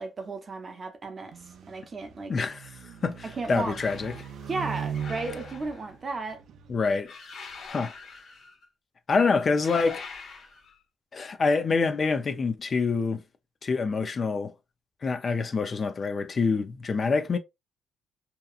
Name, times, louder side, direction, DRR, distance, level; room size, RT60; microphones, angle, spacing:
voice 1, 0.0-1.3 1.7-2.3 3.2-3.8 4.5-6.4, right 3 dB, 35° right, 0.8 m, -34 dB
sound 1, 1.3-6.8, right 7 dB, 70° right, 0.5 m, -39 dB
voice 2, 2.3-2.7 3.0-4.1 6.7-7.1 7.7-7.9 9.1-10.0 11.1-13.2 13.6-14.5 15.0-17.4, left 4 dB, 40° left, 0.5 m, -26 dB
sound 2, 3.4-4.3 4.9-6.0 7.0-8.6 9.5-10.8, left 4 dB, 70° left, 1.3 m, -44 dB
2.8 x 2.3 x 2.4 m
cardioid pair, 90°, 0 cm